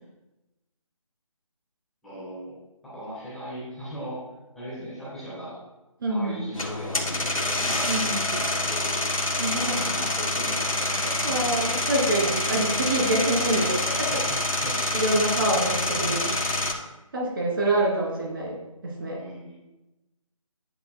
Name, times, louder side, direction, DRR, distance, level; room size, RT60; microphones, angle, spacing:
voice 1, 2.0-2.5 2.8-4.2 4.5-5.6 6.1-8.9 9.4-11.4 13.5-15.1 19.1-19.6, equal, ahead, -11 dB, 3.2 m, -38 dB
voice 2, 6.0-6.4 7.8-8.2 9.4-9.8 11.2-14.1 14.9-16.3 17.1-18.6 18.8-19.2, right 1 dB, 40° right, -2 dB, 2.8 m, -26 dB
sound 1, 6.5-16.7, left 2 dB, 80° left, 2.5 m, -27 dB
11.0 x 9.7 x 2.2 m, 0.97 s
figure-of-eight pair, 160°, 18 cm